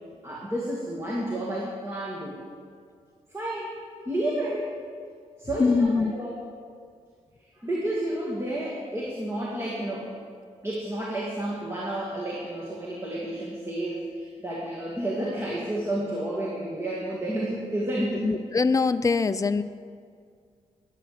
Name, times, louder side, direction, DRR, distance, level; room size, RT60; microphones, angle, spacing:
voice 1, 0.2-2.4 3.3-3.7 4.1-4.7 5.4-6.4 7.5-10.1 10.6-18.3, right 1 dB, 20° right, -4 dB, 2.3 m, -31 dB
voice 2, 5.6-6.1 18.2-19.6, left 4 dB, 25° left, 12 dB, 0.5 m, -23 dB
11.5 x 8.3 x 6.9 m, 2.1 s
cardioid pair, 90°, 12 cm